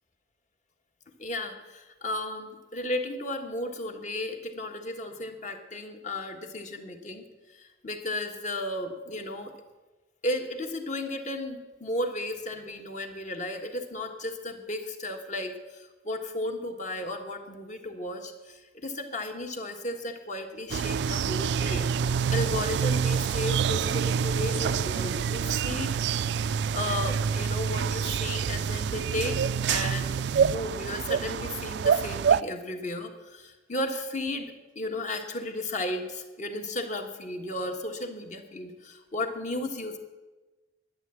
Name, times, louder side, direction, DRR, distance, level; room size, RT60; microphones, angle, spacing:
voice 1, 1.2-7.2 7.5-9.5 10.2-21.9 22.3-26.0 26.7-29.4 29.7-30.1 30.4-40.0, left 1 dB, 45° left, 5 dB, 1.5 m, -34 dB
sound 1, 20.7-32.4, right 7 dB, 65° right, 0.3 m, -27 dB
11.5 x 9.6 x 7.7 m, 1.2 s
head